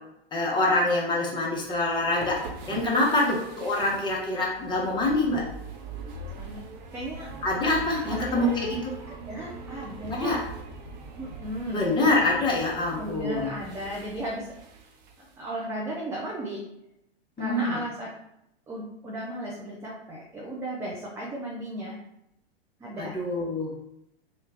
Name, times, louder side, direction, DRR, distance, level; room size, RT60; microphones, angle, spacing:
voice 1, 0.3-2.4 2.7-5.5 7.4-8.8 10.1-10.4 11.7-13.5 17.4-17.8 23.0-23.7, left 2 dB, 15° left, -3 dB, 0.9 m, -25 dB
sound 1, 1.5-15.4, right 3 dB, 45° right, 0.7 m, -42 dB
voice 2, 6.9-7.3 8.1-8.5 9.3-10.4 11.2-11.8 13.0-14.6 15.4-16.6 17.4-18.1 18.7-22.0 22.8-23.1, right 1 dB, 10° right, -3 dB, 0.4 m, -35 dB
3.1 x 2.3 x 3.4 m, 0.82 s
figure-of-eight pair, 100°, 31 cm